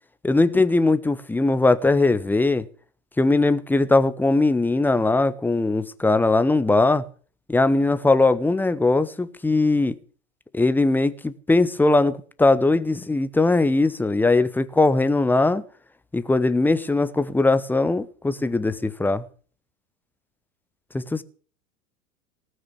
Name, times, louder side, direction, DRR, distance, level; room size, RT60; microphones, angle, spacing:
voice 1, 0.2-2.6 3.2-7.0 7.5-9.9 10.5-15.6 16.1-19.2 20.9-21.2, left 2 dB, 5° left, 0.8 m, -20 dB
19.0 x 6.3 x 9.1 m
figure-of-eight pair, 95°, 43 cm